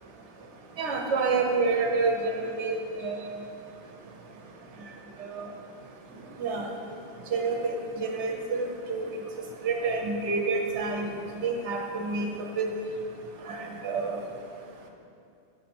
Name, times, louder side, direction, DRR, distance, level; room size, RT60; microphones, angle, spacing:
voice 1, 0.8-3.2 5.2-5.4 6.4-6.7 7.3-7.7 8.0-9.1 9.6-12.7 13.5-14.2, right 4 dB, 80° right, 2 dB, 1.0 m, -28 dB
6.3 x 4.1 x 4.3 m, 2.5 s
omnidirectional pair, 1.2 m